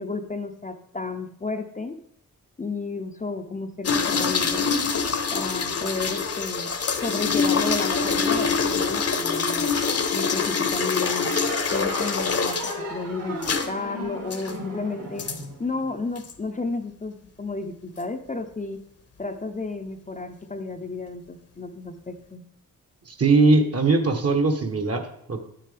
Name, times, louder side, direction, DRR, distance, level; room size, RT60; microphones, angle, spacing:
voice 1, 0.0-2.0 2.6-4.7 5.3-9.8 10.1-11.3 11.7-12.6 12.9-13.4 13.7-15.3 15.6-18.8 19.2-22.4, left 3 dB, 20° left, 5 dB, 0.6 m, -32 dB
sound 1, 3.8-12.8 13.4-13.7 14.3-14.5 15.2-15.4 16.2-16.3, left 5 dB, 45° left, 0.9 m, -25 dB
sound 2, 10.9-16.2, right 1 dB, 70° right, 3.7 m, -36 dB
voice 2, 23.1-25.4, right 3 dB, 45° right, 6 dB, 1.2 m, -20 dB
9.2 x 7.7 x 3.4 m, 0.74 s
cardioid pair, 65°, 35 cm